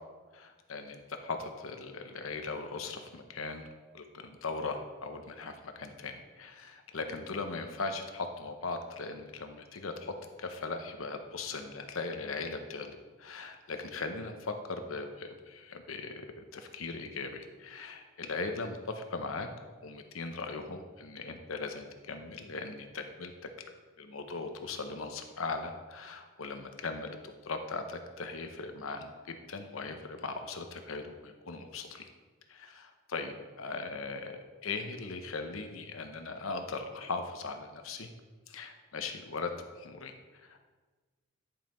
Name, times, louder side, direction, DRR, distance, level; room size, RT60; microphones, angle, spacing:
voice 1, 0.3-3.7 3.9-10.1 10.4-19.5 19.8-23.3 23.6-23.7 24.0-32.1 32.5-38.1 38.5-39.5 39.7-40.1 40.4-40.6, left 3 dB, 90° left, 6 dB, 0.9 m, -39 dB
10.0 x 5.6 x 4.3 m, 1.3 s
head